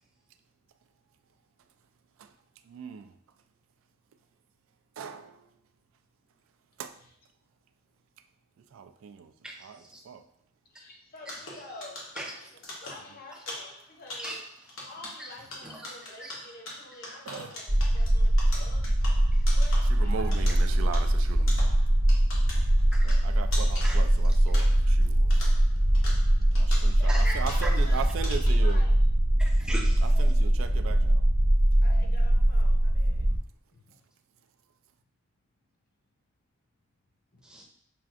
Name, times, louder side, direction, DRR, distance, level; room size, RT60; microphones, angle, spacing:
voice 1, 2.7-3.1 5.0-5.4 6.8-6.9 8.7-9.3 9.6-9.8 10.1-10.2 17.3-17.5 19.9-21.8 23.0-25.4 26.5-28.8 30.0-31.2, right 6 dB, 75° right, 0.3 m, -38 dB
voice 2, 9.4-10.0 12.2-12.5 14.2-14.4 15.2-15.3 15.6-15.9 16.2-16.4 19.3-19.4 22.9-23.2 23.8-24.0 24.3-24.4 26.7-27.3 27.6-28.0 29.4-30.1 37.4-37.6, right 1 dB, 5° right, 0.6 m, -39 dB
voice 3, 10.8-12.0 12.7-14.4 14.9-19.1 19.6-20.3 26.5-29.0 30.0-30.7 31.8-33.3 33.7-34.0 37.3-37.4, left 2 dB, 50° left, 0.8 m, -48 dB
sound 1, 11.2-25.0 25.3-27.9 28.2-28.7, left 2 dB, 80° left, 1.0 m, -43 dB
sound 2, 17.7-33.4, right 1 dB, 55° right, 1.1 m, -22 dB
5.7 x 2.4 x 2.4 m
head